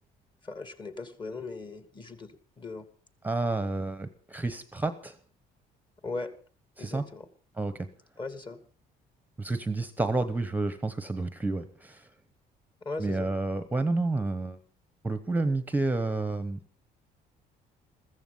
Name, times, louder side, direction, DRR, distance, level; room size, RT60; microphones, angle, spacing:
voice 1, 0.4-2.3 2.6-2.9 6.0-6.3 6.8-7.3 8.2-8.6 12.8-13.3, left 3 dB, 25° left, 10 dB, 2.2 m, -38 dB
voice 2, 3.2-5.1 6.8-7.1 7.6-7.9 9.4-12.1 13.0-14.6 15.0-16.6, right 2 dB, 10° right, 11 dB, 1.0 m, -30 dB
15.0 x 14.5 x 5.6 m, 0.42 s
cardioid pair, 110°, 17 cm